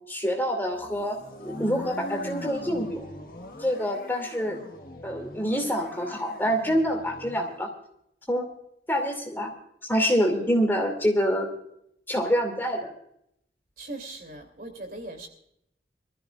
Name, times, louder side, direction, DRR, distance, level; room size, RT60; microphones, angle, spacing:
voice 1, 0.1-3.0 3.6-4.6 5.0-7.7 8.3-8.5 8.9-9.5 9.9-11.5 12.1-12.9, equal, 10° left, 3 dB, 2.6 m, -26 dB
sound 1, 0.7-7.6, left 1 dB, 50° left, 1.6 m, -41 dB
voice 2, 13.8-15.3, right 2 dB, 55° right, 5 dB, 3.0 m, -39 dB
24.5 x 14.5 x 2.4 m, 0.73 s
head